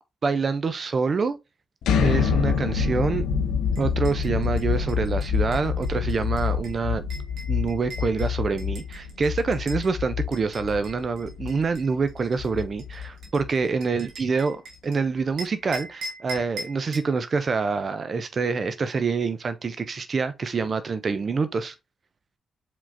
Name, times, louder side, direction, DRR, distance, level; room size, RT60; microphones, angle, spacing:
voice 1, 0.2-1.4 2.0-3.2 3.8-7.1 7.5-14.6 14.8-21.7, right 4 dB, 50° right, 0.5 m, -26 dB
sound 1, 1.8-13.6, left 6 dB, 85° left, 0.6 m, -27 dB
sound 2, 3.7-9.9 10.3-15.0 15.4-17.1, right 2 dB, 80° right, 1.4 m, -41 dB
4.9 x 3.6 x 2.6 m
cardioid pair, 65°, 0 cm